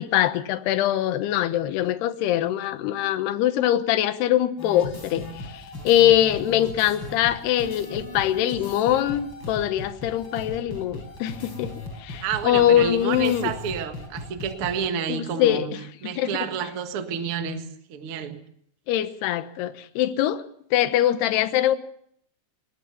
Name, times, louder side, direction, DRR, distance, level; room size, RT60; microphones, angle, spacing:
voice 1, 0.0-11.7 12.0-13.5 15.1-16.4 18.9-20.4 20.7-21.8, left 12 dB, 70° left, 12 dB, 2.8 m, -23 dB
sound 1, 4.6-14.8, left 2 dB, 25° left, 5.1 m, -38 dB
voice 2, 12.2-15.7 16.0-18.4, right 7 dB, 80° right, 6 dB, 1.2 m, -29 dB
21.0 x 20.0 x 7.1 m, 0.66 s
omnidirectional pair, 5.5 m